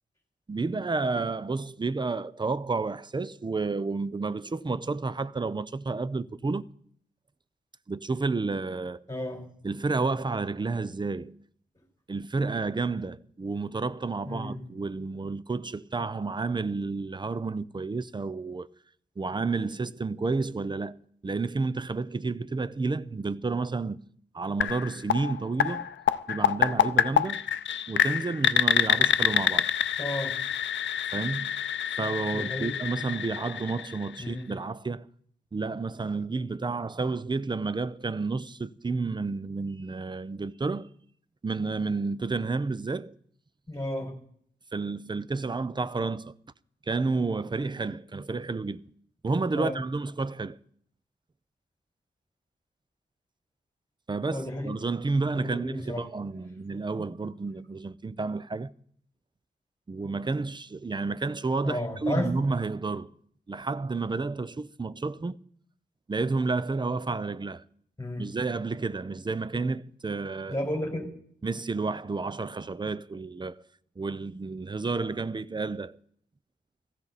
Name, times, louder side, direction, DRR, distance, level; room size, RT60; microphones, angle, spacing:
voice 1, 0.5-6.6 7.9-9.0 9.6-11.4 12.1-18.7 19.2-21.0 21.2-24.0 24.3-25.9 26.3-27.5 27.9-29.7 31.1-31.5 32.0-35.1 35.5-40.9 41.4-43.1 44.7-46.3 46.9-48.8 49.2-50.6 54.1-58.7 59.9-63.1 63.5-65.4 66.1-67.6 68.2-70.6 71.4-73.6 74.0-76.0, right 3 dB, 25° right, 0.5 m, -30 dB
voice 2, 9.1-9.4 14.2-14.6 30.0-30.3 32.3-32.7 34.2-34.5 43.7-44.1 49.5-49.8 54.3-54.7 55.3-56.0 56.9-57.1 61.6-62.3 68.0-68.2 70.5-71.1, left 1 dB, 15° left, 4.9 m, -32 dB
sound 1, 24.6-34.4, left 9 dB, 85° left, 0.5 m, -27 dB
16.0 x 15.0 x 4.1 m
cardioid pair, 70°, 19 cm